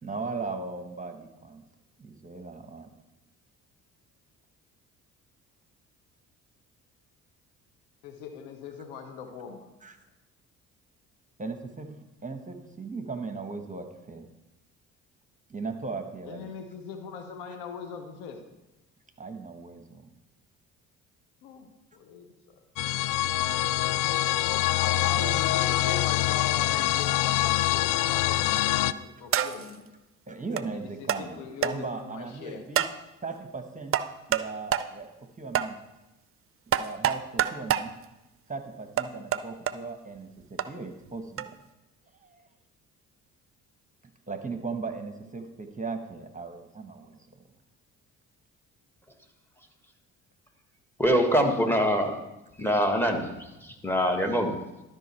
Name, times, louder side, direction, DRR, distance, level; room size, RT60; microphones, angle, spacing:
voice 1, 0.0-1.6 2.0-2.9 9.8-10.0 11.4-11.9 12.2-14.3 15.5-16.5 19.2-20.1 24.9-25.9 30.3-32.8 33.2-34.0 34.3-35.1 35.4-35.8 36.7-37.9 38.5-41.5 42.2-42.5 44.3-47.2, right 4 dB, 20° right, 6 dB, 1.2 m, -38 dB
voice 2, 8.0-9.7 16.2-18.5 21.4-22.6 24.8-29.9 30.7-32.6, left 6 dB, 75° left, 5 dB, 1.2 m, -40 dB
sound 1, 22.8-28.9, left 15 dB, 55° left, 0.4 m, -25 dB
sound 2, 28.4-28.7 29.3-29.7 30.6-30.7 31.1-31.2 31.6-31.7 32.7-33.0 33.9-34.5 34.7-34.9 35.5-35.7 36.7-37.9 39.0-39.7 40.6-40.7 41.4-41.5, right 10 dB, 35° right, 0.5 m, -26 dB
voice 3, 51.0-52.2 52.6-53.2 53.8-54.5, equal, 5° left, 4 dB, 1.7 m, -23 dB
12.0 x 5.3 x 4.4 m, 0.98 s
hypercardioid pair, 50°, 40 cm